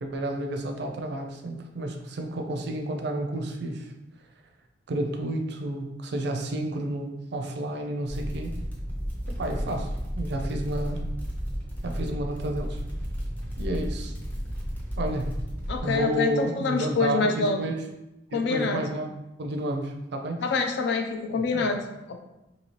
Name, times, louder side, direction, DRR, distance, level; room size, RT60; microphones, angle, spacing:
voice 1, 0.0-3.9 4.9-8.5 9.4-11.0 11.8-12.8 13.6-14.1 15.0-15.3 15.8-17.8 18.3-20.4 21.3-21.7, right 1 dB, 65° right, 4 dB, 0.4 m, -31 dB
sound 1, 8.1-15.8, equal, 10° left, 0.6 m, -33 dB
voice 2, 15.7-17.6 18.3-18.8 20.4-22.2, left 4 dB, 65° left, 5 dB, 0.4 m, -26 dB
2.9 x 2.7 x 2.9 m, 0.94 s
head